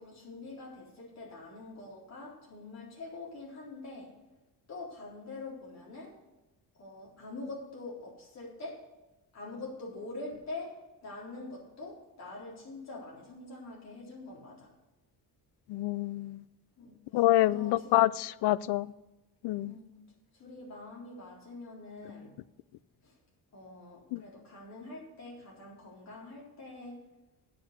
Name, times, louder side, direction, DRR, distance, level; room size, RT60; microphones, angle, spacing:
voice 1, 0.0-4.1 4.7-6.1 6.8-8.8 9.3-14.7 16.8-18.0 19.7-20.0 20.3-22.3 23.0-23.2 23.5-27.1, left 2 dB, 40° left, -3 dB, 3.8 m, -45 dB
voice 2, 15.7-16.4 17.1-18.9 19.4-19.7 24.1-24.2, left 15 dB, 85° left, 19 dB, 0.5 m, -27 dB
9.1 x 8.5 x 6.6 m, 1.0 s
cardioid pair, 175°, 39 cm